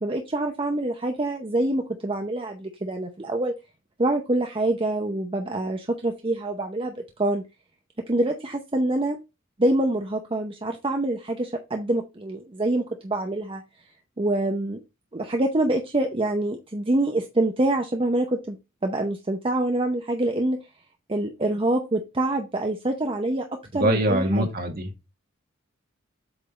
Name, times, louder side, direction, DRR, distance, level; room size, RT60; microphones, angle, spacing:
voice 1, 0.0-3.5 4.0-7.4 8.1-9.2 9.6-13.6 14.2-14.8 15.1-18.6 18.8-20.6 21.1-23.5 23.7-24.5, right 1 dB, 25° right, 0.7 m, -25 dB
voice 2, 23.7-24.9, right 1 dB, 50° right, 1.7 m, -23 dB
8.0 x 3.6 x 4.1 m
head